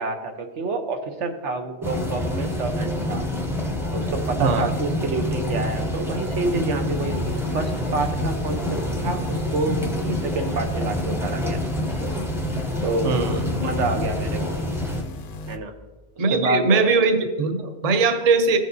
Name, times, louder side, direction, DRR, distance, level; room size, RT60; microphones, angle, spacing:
voice 1, 0.0-3.2 3.9-11.6 12.8-13.2 13.5-14.4 15.5-15.7 16.3-16.9, right 3 dB, 85° right, 5 dB, 1.2 m, -28 dB
sound 1, 1.8-15.0, left 1 dB, 5° right, 0.6 m, -27 dB
sound 2, 6.9-15.6, left 3 dB, 50° left, 0.5 m, -36 dB
voice 2, 13.0-13.5 16.2-18.6, right 4 dB, 40° right, 7 dB, 0.7 m, -20 dB
15.0 x 6.4 x 2.7 m, 1.2 s
omnidirectional pair, 1.2 m